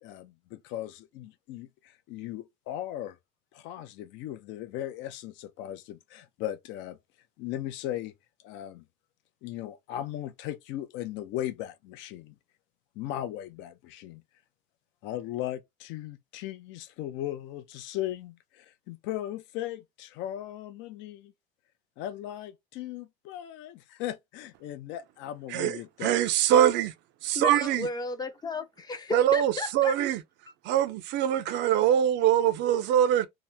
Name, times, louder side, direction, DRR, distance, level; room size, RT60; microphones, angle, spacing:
voice 1, 0.0-3.2 3.5-7.0 7.4-8.1 8.4-8.8 9.4-12.3 13.0-14.2 15.0-21.3 22.0-26.2, left 13 dB, 70° left, 0.5 m, -37 dB
voice 2, 25.5-26.9 27.2-27.9 29.1-30.2 30.6-33.3, right 11 dB, 60° right, 0.5 m, -23 dB
voice 3, 27.3-29.9, left 3 dB, 20° left, 0.5 m, -34 dB
2.9 x 2.1 x 3.2 m
cardioid pair, 115°, 20 cm